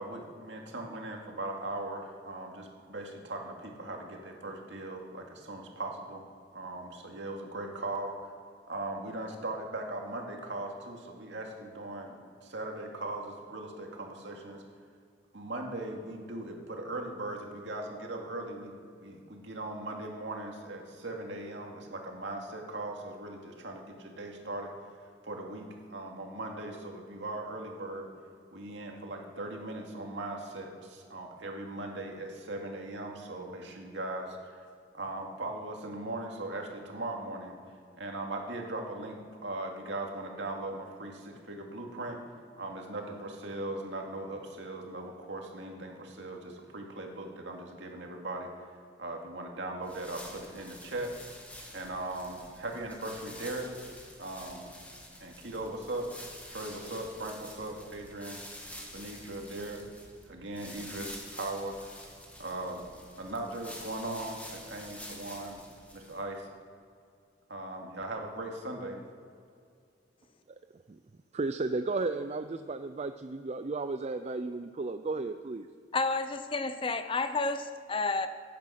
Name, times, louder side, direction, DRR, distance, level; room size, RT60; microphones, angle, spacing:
voice 1, 0.0-6.2 6.5-8.3 8.7-14.6 15.3-24.7 25.2-28.1 28.5-34.6 34.9-37.6 38.0-42.2 42.6-48.5 49.0-51.1 51.7-53.7 54.2-54.7 55.2-56.1 56.5-58.4 58.9-59.9 60.3-61.8 62.4-62.9 63.2-65.6 65.9-66.5 67.5-69.0, right 2 dB, 70° right, 1 dB, 2.3 m, -39 dB
sound 1, 49.8-66.4, left 1 dB, 10° left, 2.0 m, -48 dB
voice 2, 71.3-75.7, right 3 dB, 35° right, 9 dB, 0.4 m, -34 dB
voice 3, 75.9-78.3, left 3 dB, 30° left, 10 dB, 0.7 m, -30 dB
16.0 x 10.0 x 5.9 m, 2.3 s
head